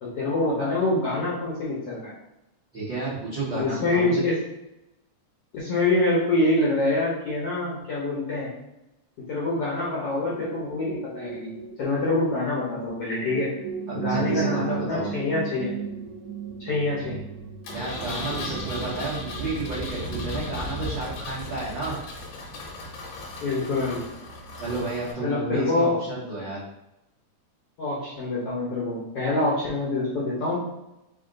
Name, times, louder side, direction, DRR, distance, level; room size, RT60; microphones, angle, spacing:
voice 1, 0.0-2.1 3.5-4.4 5.5-8.5 9.3-11.5 11.8-13.5 13.9-15.7 16.6-17.2 23.4-24.0 25.2-26.0 27.8-30.6, left 2 dB, 65° left, -6 dB, 1.5 m, -25 dB
voice 2, 2.7-4.2 13.9-15.1 17.7-22.0 24.6-26.6, right 3 dB, 70° right, -9 dB, 1.1 m, -31 dB
sound 1, 9.8-19.1, right 8 dB, 45° right, 1.2 m, -36 dB
Engine, 17.6-25.1, left 3 dB, 80° left, 2.3 m, -38 dB
sound 2, 17.8-23.4, right 1 dB, 90° right, 2.1 m, -36 dB
4.9 x 2.5 x 3.8 m, 0.89 s
omnidirectional pair, 3.6 m